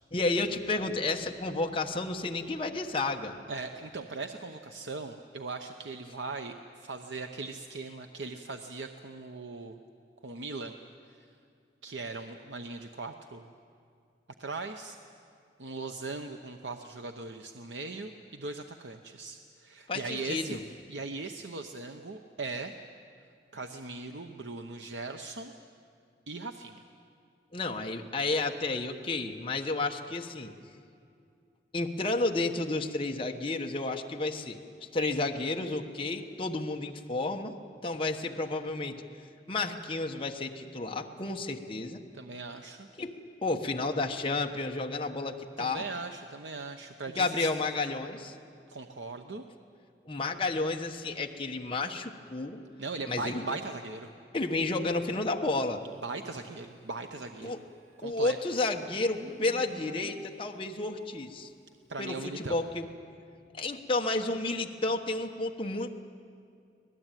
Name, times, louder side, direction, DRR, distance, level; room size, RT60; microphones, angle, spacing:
voice 1, 0.1-3.4 19.9-20.6 27.5-30.5 31.7-34.6 34.9-37.6 37.8-39.0 39.5-42.0 43.0-43.1 43.4-45.8 47.2-48.3 50.0-52.6 53.1-53.4 54.3-55.8 57.4-57.6 58.0-61.5 62.0-62.9 63.5-65.9, left 2 dB, 30° left, 2 dB, 1.2 m, -31 dB
voice 2, 3.5-9.8 10.2-10.7 11.0-11.3 11.8-13.5 14.4-15.0 15.6-20.6 20.9-22.8 23.5-25.5 26.3-26.8 42.1-42.9 45.6-47.5 48.7-49.4 52.8-54.1 56.0-57.5 58.0-58.4 61.9-62.6, right 3 dB, 85° right, 5 dB, 0.9 m, -39 dB
Livestock farm animals working animals, 57.3-60.6, right 1 dB, 65° right, 3.7 m, -50 dB
25.5 x 18.5 x 9.1 m, 2.4 s
head